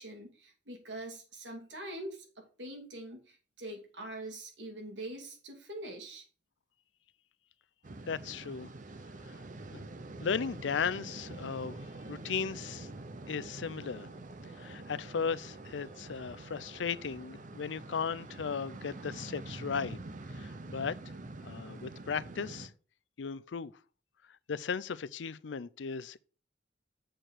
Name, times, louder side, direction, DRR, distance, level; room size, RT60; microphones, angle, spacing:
voice 1, 0.0-6.2, right 1 dB, 80° right, 2.8 m, -44 dB
sound 1, 7.8-22.7, right 2 dB, 45° right, 0.7 m, -46 dB
voice 2, 8.0-8.7 9.2-9.4 9.7-9.9 10.2-11.8 12.1-12.9 13.3-14.1 14.6-20.0 20.4-20.9 21.4-22.7 23.2-23.7 24.5-26.2, left 6 dB, 85° left, 0.5 m, -36 dB
7.6 x 4.5 x 6.5 m
head